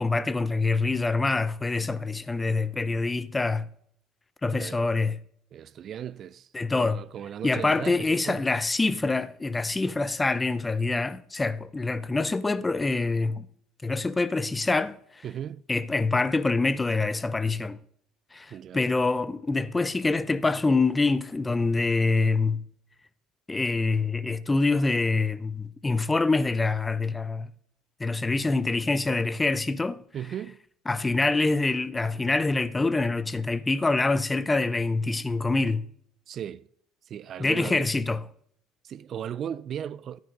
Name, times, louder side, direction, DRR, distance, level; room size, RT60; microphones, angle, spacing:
voice 1, 0.0-3.7 4.4-5.2 6.5-7.0 7.4-13.5 13.8-15.0 15.7-17.8 18.3-22.6 23.5-27.5 28.0-30.0 30.9-35.8 37.4-38.2, left 3 dB, 20° left, 0.8 m, -25 dB
voice 2, 5.5-6.5 6.8-8.4 15.2-15.6 18.5-18.9 30.1-30.6 36.3-36.7 37.1-37.9 38.8-40.2, right 9 dB, 50° right, 0.5 m, -36 dB
12.5 x 9.2 x 5.3 m
hypercardioid pair, 75°, 0 cm